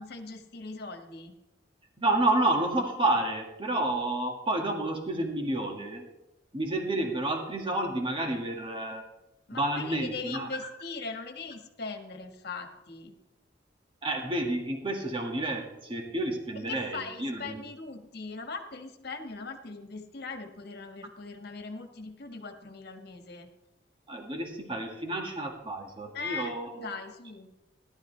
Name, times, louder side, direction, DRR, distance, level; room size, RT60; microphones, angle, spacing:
voice 1, 0.0-1.3 9.5-13.1 16.7-23.5 26.1-27.5, left 4 dB, 60° left, 5 dB, 1.6 m, -40 dB
voice 2, 2.0-6.1 6.5-9.0 9.5-10.5 14.0-17.6 24.1-26.9, right 2 dB, 30° right, 1 dB, 1.9 m, -30 dB
17.5 x 11.5 x 3.3 m, 0.96 s
head